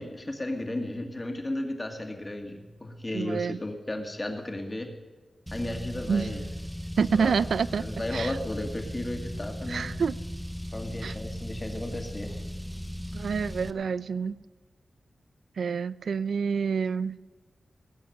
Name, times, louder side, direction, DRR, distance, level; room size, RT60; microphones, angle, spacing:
voice 1, 0.0-4.9 5.5-6.4 7.1-7.3 7.8-10.0 10.7-12.4, left 1 dB, 20° left, 4 dB, 1.9 m, -34 dB
voice 2, 3.1-3.6 6.1-6.5 7.0-7.9 8.1-8.4 9.7-10.2 11.0-11.2 13.1-14.4 15.6-17.2, right 6 dB, 80° right, 18 dB, 0.4 m, -28 dB
Car, 5.5-13.7, equal, ahead, 0.6 m, -37 dB
19.0 x 8.7 x 6.6 m, 1.4 s
wide cardioid pair, 125°, 0 cm